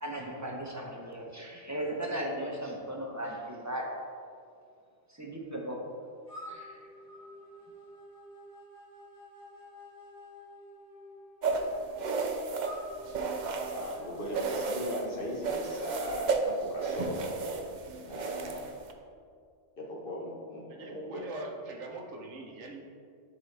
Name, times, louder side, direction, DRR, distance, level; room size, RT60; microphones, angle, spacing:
voice 1, 0.0-3.9 5.1-5.8 6.5-6.8, right 1 dB, 15° right, -1 dB, 0.8 m, -37 dB
sound 1, 6.3-15.4, equal, 30° left, 1.4 m, -50 dB
sound 2, 11.4-14.0 14.3-15.1 15.4-18.9, right 4 dB, 50° right, 0.6 m, -33 dB
voice 2, 13.6-17.4 18.1-18.6 19.8-21.3, equal, 50° left, -3 dB, 1.4 m, -38 dB
voice 3, 20.7-22.9, right 2 dB, 90° right, 2 dB, 1.2 m, -43 dB
11.5 x 4.0 x 3.3 m, 2.2 s
omnidirectional pair, 1.2 m